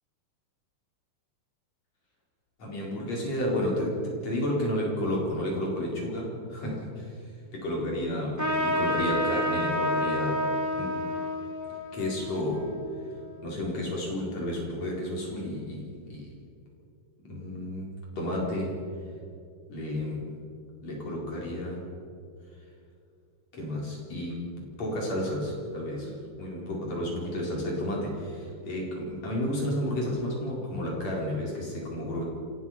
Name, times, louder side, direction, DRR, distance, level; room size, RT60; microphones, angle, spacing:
voice 1, 2.6-7.2 7.5-10.5 10.8-11.1 11.9-12.7 13.4-16.3 17.2-18.8 19.7-20.3 20.8-21.9 23.5-32.2, left 1 dB, 35° left, -2 dB, 5.0 m, -31 dB
Trumpet, 8.4-13.4, equal, 5° right, 1.3 m, -30 dB
27.0 x 18.0 x 5.8 m, 2.4 s
omnidirectional pair, 5.9 m